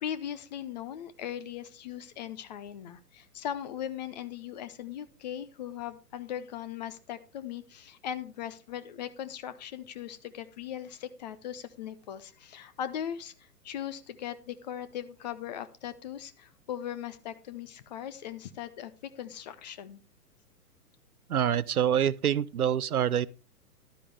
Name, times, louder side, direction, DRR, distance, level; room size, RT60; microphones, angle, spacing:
voice 1, 0.0-20.0, left 10 dB, 30° left, 0.7 m, -39 dB
voice 2, 21.3-23.3, right 9 dB, 70° right, 0.6 m, -26 dB
11.5 x 9.9 x 3.4 m
figure-of-eight pair, 115°, 46 cm